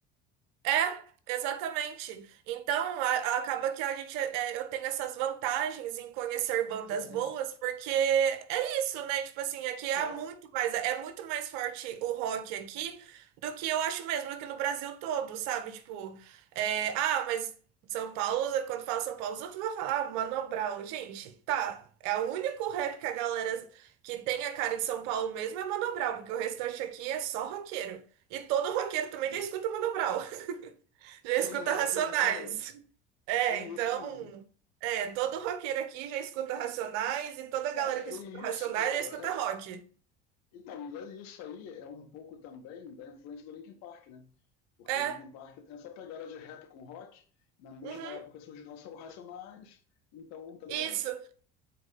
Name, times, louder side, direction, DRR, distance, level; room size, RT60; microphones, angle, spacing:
voice 1, 0.6-17.5 17.9-28.0 28.3-30.7 31.0-32.5 33.3-34.4 34.8-39.8 44.9-45.2 47.8-48.2 50.7-51.2, right 10 dB, 65° right, 1.2 m, -32 dB
voice 2, 6.9-7.3 9.9-10.3 29.2-29.4 31.3-32.6 33.5-34.3 37.7-39.4 40.5-44.3 44.8-47.3 47.6-49.8 50.1-51.0, left 7 dB, 65° left, 1.7 m, -45 dB
7.9 x 4.7 x 4.2 m
hypercardioid pair, 65°, 29 cm